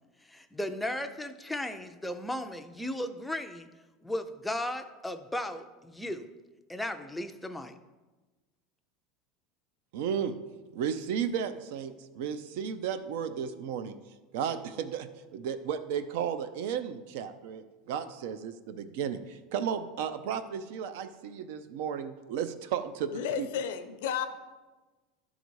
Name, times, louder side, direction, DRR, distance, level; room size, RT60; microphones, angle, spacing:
voice 1, 0.3-3.7 4.0-6.3 6.7-7.8, left 1 dB, 5° left, 7 dB, 0.4 m, -35 dB
voice 2, 9.9-10.3 10.7-13.9 14.3-23.5, right 8 dB, 70° right, 11 dB, 0.6 m, -34 dB
voice 3, 23.1-24.3, left 8 dB, 80° left, 9 dB, 0.6 m, -32 dB
11.5 x 4.0 x 4.6 m, 1.2 s
supercardioid pair, 150°, 0 cm